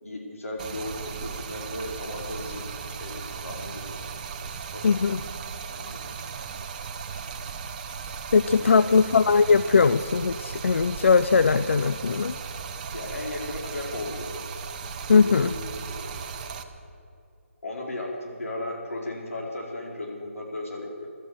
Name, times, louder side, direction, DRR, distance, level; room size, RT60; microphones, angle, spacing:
voice 1, 0.0-4.0 4.4-6.0 8.5-9.0 12.9-14.3 15.2-16.3 17.6-21.1, left 1 dB, 85° left, -1 dB, 4.7 m, -36 dB
Stream, 0.6-16.6, right 6 dB, 35° right, 1.0 m, -37 dB
voice 2, 4.8-5.2 8.3-12.3 15.1-15.5, left 5 dB, 65° left, 14 dB, 0.5 m, -20 dB
16.5 x 12.5 x 6.7 m, 2.6 s
figure-of-eight pair, 155°, 7 cm